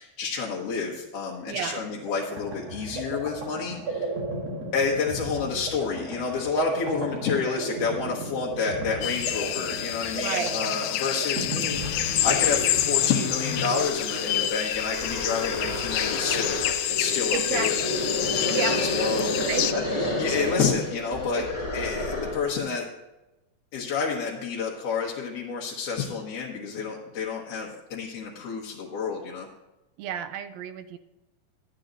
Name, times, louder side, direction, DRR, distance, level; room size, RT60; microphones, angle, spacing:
voice 1, 0.0-4.1 4.7-18.0 18.3-19.3 19.7-19.8 20.2-21.4 21.7-22.9 23.7-29.5, left 5 dB, 60° left, -3 dB, 2.0 m, -29 dB
voice 2, 1.4-1.8 10.1-10.6 17.3-18.0 18.5-18.9 19.4-20.1 21.3-21.5 30.0-31.0, right 8 dB, 80° right, 11 dB, 1.6 m, -32 dB
sound 1, 1.8-12.6, right 2 dB, 60° right, 2.8 m, -35 dB
sound 2, 9.0-19.7, left 12 dB, 80° left, 1.8 m, -28 dB
sound 3, 11.7-22.5, left 2 dB, 15° left, 1.2 m, -31 dB
12.0 x 9.1 x 3.9 m, 1.0 s
omnidirectional pair, 3.5 m